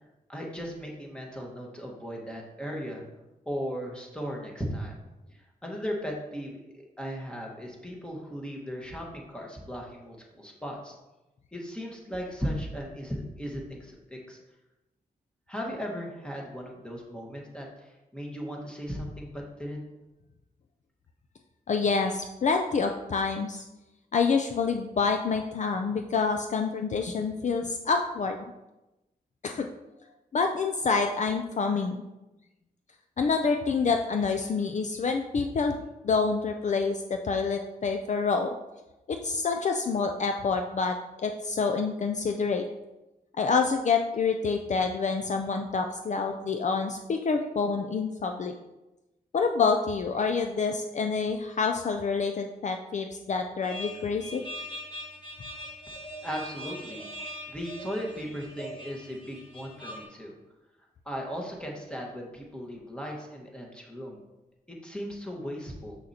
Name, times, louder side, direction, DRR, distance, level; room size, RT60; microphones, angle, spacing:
voice 1, 0.3-3.0 3.4-5.0 5.3-10.9 11.5-14.4 15.5-19.9 56.2-57.1 57.5-60.3 61.0-64.2 64.7-66.0, equal, 5° left, -1 dB, 1.5 m, -37 dB
voice 2, 21.7-23.6 24.1-28.4 29.4-29.7 30.3-32.0 33.2-35.7 36.0-38.5 39.1-41.0 41.2-42.6 43.4-48.5 49.3-54.4, left 4 dB, 50° left, 5 dB, 0.4 m, -27 dB
sound 1, 53.6-60.0, equal, 30° left, 1.4 m, -41 dB
6.6 x 6.3 x 2.9 m, 1.0 s
wide cardioid pair, 95°, 16 cm